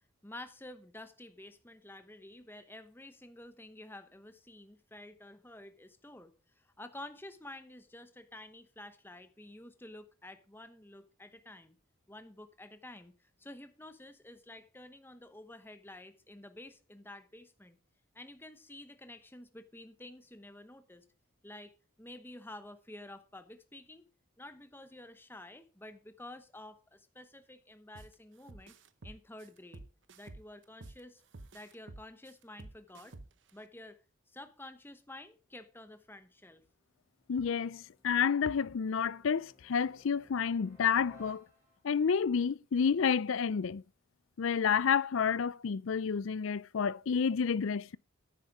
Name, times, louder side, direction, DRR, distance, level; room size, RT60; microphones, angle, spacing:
voice 1, 0.2-11.8 12.1-17.8 18.1-21.0 21.4-21.7 22.0-24.0 24.4-28.7 29.0-29.8 30.2-31.2 31.5-33.2 33.5-34.0 34.3-36.6, left 1 dB, 10° left, 0.9 m, -50 dB
sound 1, 27.9-28.1 28.5-31.0 31.3-33.5, right 2 dB, 60° right, 0.8 m, -50 dB
sound 2, 35.7-42.1, left 1 dB, 10° right, 4.5 m, -63 dB
voice 2, 37.3-41.4 41.8-43.8 44.4-48.0, left 6 dB, 70° left, 0.4 m, -30 dB
10.0 x 8.3 x 4.8 m
head